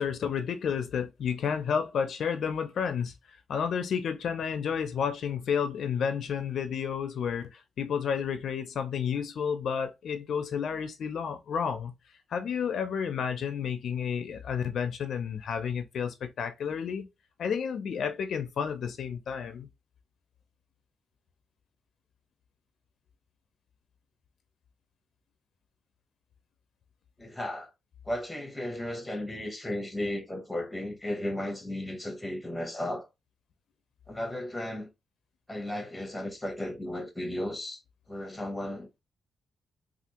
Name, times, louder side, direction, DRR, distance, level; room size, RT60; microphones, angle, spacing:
voice 1, 0.0-3.1 3.5-11.9 12.3-17.1 17.4-19.7, left 7 dB, 65° left, 0.4 m, -31 dB
voice 2, 27.2-27.7 28.0-33.1 34.1-34.9 35.5-37.8 38.1-38.9, left 1 dB, 5° left, 0.8 m, -35 dB
3.3 x 2.4 x 2.8 m
wide cardioid pair, 150°, 0 cm